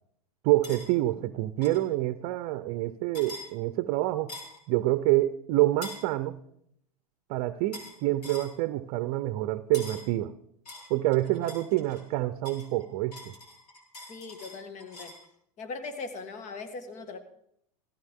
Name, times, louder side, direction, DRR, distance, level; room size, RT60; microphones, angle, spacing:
voice 1, 0.4-4.3 4.7-6.4 7.3-10.3 10.9-13.3, right 16 dB, 50° right, 12 dB, 0.7 m, -27 dB
sound 1, 0.6-0.9 1.6-1.8 3.1-3.5 4.3-4.6 5.8-6.1 7.7-8.0 8.2-8.5 9.7-10.1 10.7-12.1 12.5-15.2, left 2 dB, 90° left, 4.4 m, -44 dB
voice 2, 14.1-15.1 15.6-17.2, left 4 dB, 40° left, 8 dB, 1.9 m, -39 dB
17.0 x 14.5 x 3.7 m, 0.72 s
hypercardioid pair, 105°, 20 cm